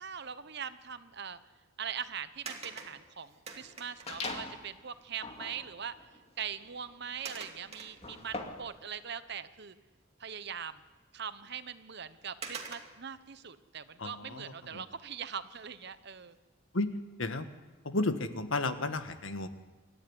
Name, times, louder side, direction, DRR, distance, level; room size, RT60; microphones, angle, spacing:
voice 1, 0.0-1.4 1.8-5.9 6.4-9.7 10.2-10.8 11.1-16.4, right 7 dB, 60° right, 12 dB, 1.1 m, -41 dB
sound 1, 2.5-4.3 5.5-5.6 6.0-6.2 7.2-8.4 8.9-9.0 11.4-11.5 12.4-13.2 15.4-15.8 16.3-16.4, right 5 dB, 30° right, 2.5 m, -45 dB
sound 2, 4.1-4.7 5.1-8.8, left 2 dB, 30° left, 2.3 m, -42 dB
voice 2, 14.0-14.8 16.7-16.9 17.2-17.5 17.8-19.5, left 2 dB, 85° left, 9 dB, 1.6 m, -33 dB
26.5 x 13.5 x 9.8 m, 1.2 s
head